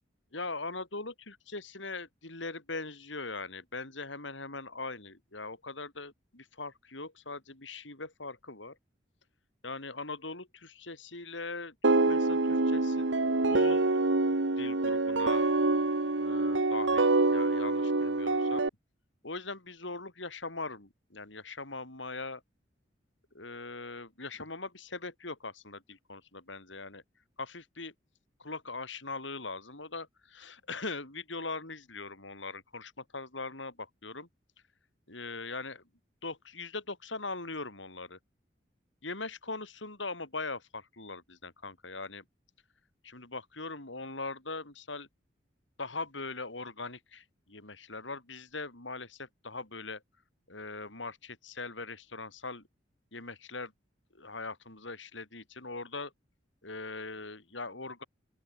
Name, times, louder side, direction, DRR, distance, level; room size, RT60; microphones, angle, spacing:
voice 1, 0.3-8.8 9.6-13.1 13.4-13.9 14.6-15.5 16.2-18.7 19.2-22.4 23.3-27.0 27.4-27.9 28.4-34.3 35.1-35.8 36.2-38.2 39.0-42.2 43.0-45.1 45.8-50.0 50.5-52.6 53.1-53.7 54.1-56.1 56.6-58.0, left 3 dB, 85° left, 5.5 m, -41 dB
sound 1, 11.8-18.7, right 2 dB, 85° right, 1.3 m, -26 dB
open air
head